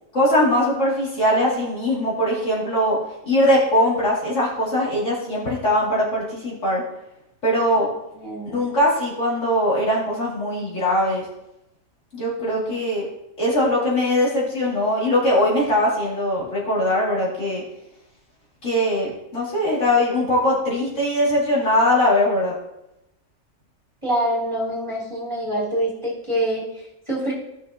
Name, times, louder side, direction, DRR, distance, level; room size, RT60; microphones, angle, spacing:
voice 1, 0.1-3.0 3.3-6.8 7.4-7.9 8.5-11.2 12.1-13.0 13.4-17.6 18.6-22.5, left 1 dB, 55° left, -7 dB, 2.9 m, -21 dB
voice 2, 8.1-8.6 12.4-12.6 24.0-27.3, right 1 dB, 20° right, -7 dB, 3.0 m, -26 dB
16.5 x 6.2 x 2.8 m, 0.87 s
omnidirectional pair, 1.5 m